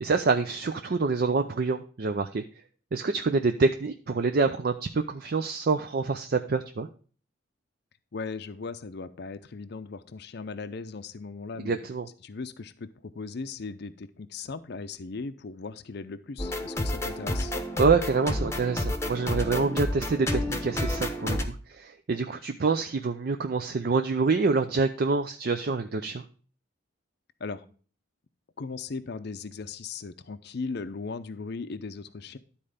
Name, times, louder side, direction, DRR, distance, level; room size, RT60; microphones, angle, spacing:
voice 1, 0.0-2.4 2.9-6.9 11.6-12.1 17.8-26.2, right 4 dB, 50° right, 7 dB, 0.5 m, -26 dB
voice 2, 8.1-11.8 12.2-17.6 27.4-27.6 28.6-32.4, left 4 dB, 55° left, 11 dB, 0.5 m, -38 dB
sound 1, 16.4-21.4, left 1 dB, 15° left, 0.8 m, -30 dB
12.0 x 4.3 x 5.0 m, 0.40 s
head